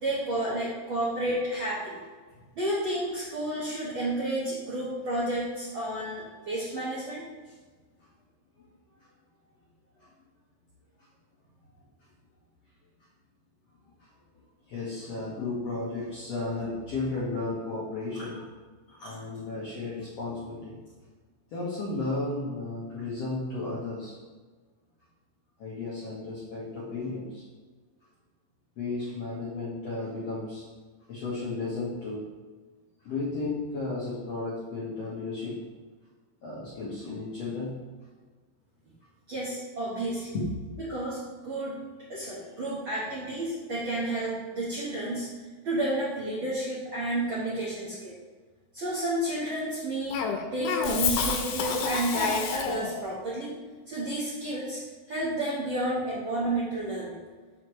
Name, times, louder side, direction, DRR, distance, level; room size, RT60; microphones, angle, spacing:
voice 1, 0.0-2.0 2.5-7.3 39.3-40.3 40.9-41.8 42.1-45.3 45.6-48.2 48.7-50.2 50.5-53.6 53.9-54.8 55.1-57.2, right 1 dB, 70° right, -7 dB, 1.1 m, -31 dB
voice 2, 14.7-18.5 18.9-20.8 21.5-24.2 25.6-27.4 28.8-30.6 31.1-32.3 33.0-35.6 36.4-37.8 40.3-40.7, left 3 dB, 65° left, -7 dB, 1.5 m, -34 dB
Cough, 50.1-53.0, left 6 dB, 90° left, 2.5 m, -29 dB
6.4 x 6.3 x 3.1 m, 1.4 s
omnidirectional pair, 4.4 m